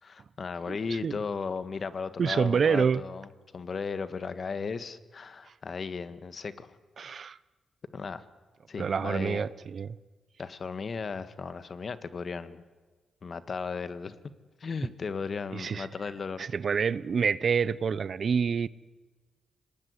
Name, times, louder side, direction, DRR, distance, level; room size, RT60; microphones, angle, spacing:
voice 1, 0.0-6.7 7.9-8.2 8.7-9.5 10.4-12.6 13.2-14.2 14.6-16.5, left 5 dB, 50° left, 1.6 m, -36 dB
voice 2, 2.2-3.0 7.0-7.4 8.8-10.0 15.5-15.9 16.4-18.7, right 6 dB, 55° right, 0.8 m, -27 dB
26.0 x 19.0 x 9.6 m
cardioid pair, 70°, 0 cm